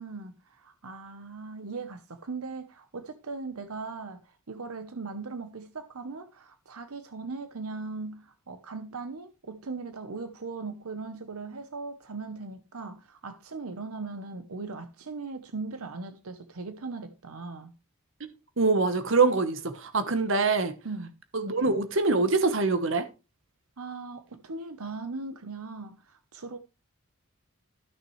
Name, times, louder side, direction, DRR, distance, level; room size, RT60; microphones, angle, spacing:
voice 1, 0.0-4.2 4.5-17.7 20.8-21.2 23.8-26.6, right 3 dB, 80° right, 0.9 m, -39 dB
voice 2, 18.6-20.7 21.3-23.0, right 3 dB, 60° right, 1.1 m, -24 dB
13.5 x 6.2 x 3.1 m
head